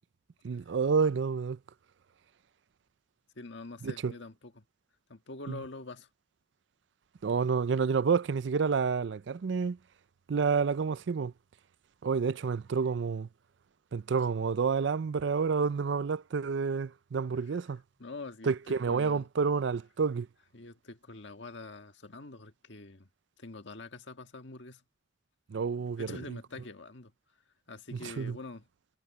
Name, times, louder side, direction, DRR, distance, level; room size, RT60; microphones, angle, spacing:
voice 1, 0.4-1.6 3.8-4.1 5.5-5.6 7.2-9.8 10.3-11.3 12.0-13.3 13.9-17.8 18.5-20.3 25.5-26.1 28.2-28.4, right 5 dB, 70° right, 0.4 m, -29 dB
voice 2, 3.4-4.6 5.1-6.1 17.4-19.3 20.5-23.1 23.4-24.8 26.0-27.1 27.7-28.7, left 3 dB, 75° left, 1.6 m, -45 dB
head